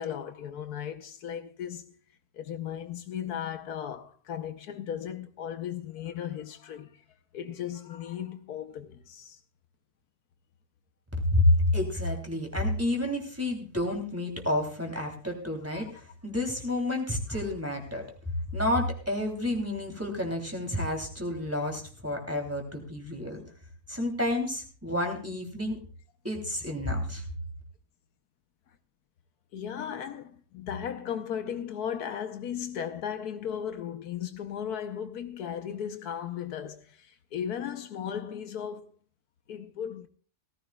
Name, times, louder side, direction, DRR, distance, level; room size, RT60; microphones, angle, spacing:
voice 1, 0.0-2.0 2.3-7.0 7.3-9.4 15.7-15.8 29.5-38.9 39.5-40.1, left 9 dB, 80° left, 1.4 m, -36 dB
voice 2, 11.3-18.0 18.5-23.4 23.9-25.8 26.2-27.2, left 1 dB, 10° right, 2.8 m, -29 dB
18.0 x 14.5 x 2.3 m
omnidirectional pair, 1.7 m